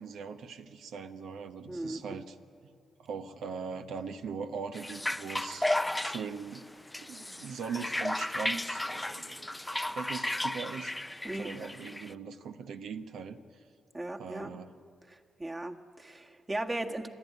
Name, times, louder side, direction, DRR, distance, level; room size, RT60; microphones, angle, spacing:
voice 1, 0.0-2.4 3.0-6.7 7.0-9.6 9.9-13.4 14.2-14.7, right 5 dB, 75° right, 8 dB, 1.0 m, -41 dB
voice 2, 1.7-2.2 11.2-11.5 13.9-14.5 15.1-17.1, right 1 dB, 25° right, 3 dB, 1.7 m, -37 dB
sound 1, 4.7-12.1, left 1 dB, 15° left, 0.5 m, -34 dB
28.0 x 11.0 x 9.6 m, 2.3 s
hypercardioid pair, 45°, 0 cm